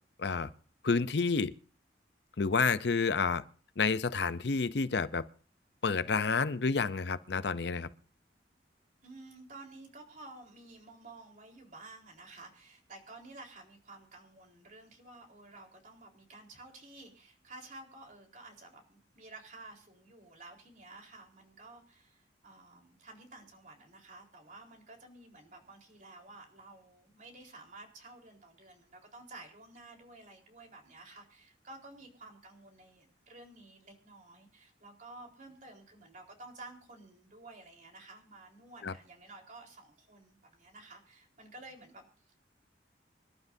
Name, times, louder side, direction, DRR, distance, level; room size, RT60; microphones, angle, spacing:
voice 1, 0.2-0.5 0.8-1.5 2.4-3.4 3.8-5.2 5.8-7.9 38.8-38.9, left 4 dB, 65° left, 0.6 m, -29 dB
voice 2, 9.0-42.4, right 2 dB, 45° right, 4.1 m, -52 dB
26.0 x 12.0 x 2.7 m
head